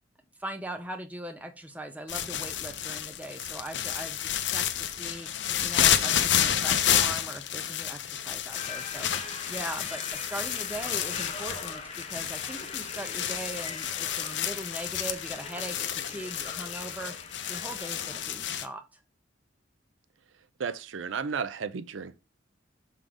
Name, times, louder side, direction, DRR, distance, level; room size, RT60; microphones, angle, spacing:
voice 1, 0.4-5.3 5.6-9.1 9.5-17.2 17.5-19.0, right 1 dB, 10° right, 0.9 m, -40 dB
sound 1, 2.1-18.7, left 10 dB, 65° left, 0.6 m, -30 dB
sound 2, 8.5-18.3, left 4 dB, 35° left, 1.0 m, -42 dB
voice 2, 20.6-22.2, right 6 dB, 85° right, 0.5 m, -33 dB
6.3 x 3.8 x 5.1 m
head